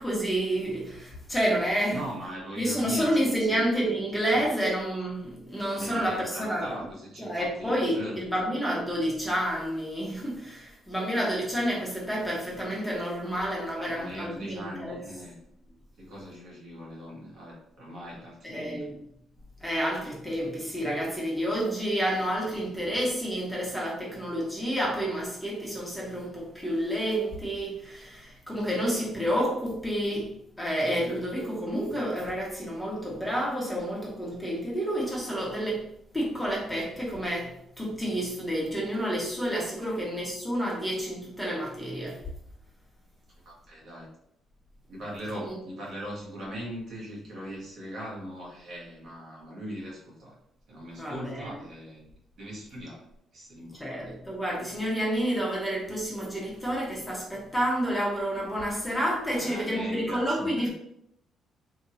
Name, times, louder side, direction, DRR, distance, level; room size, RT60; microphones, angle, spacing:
voice 1, 0.0-2.1 2.6-6.9 7.2-15.0 18.4-18.9 19.6-30.3 30.6-35.8 36.1-42.2 45.2-45.6 50.9-51.6 53.7-60.7, equal, 5° left, -4 dB, 1.1 m, -29 dB
voice 2, 1.9-3.7 4.3-4.4 5.7-8.5 13.7-15.3 16.0-18.9 39.9-40.0 43.4-44.1 44.9-50.3 50.7-52.1 52.4-53.1 53.3-54.0 59.3-60.7, equal, 70° right, -5 dB, 1.3 m, -40 dB
2.9 x 2.6 x 2.7 m, 0.76 s
cardioid pair, 90°, 0 cm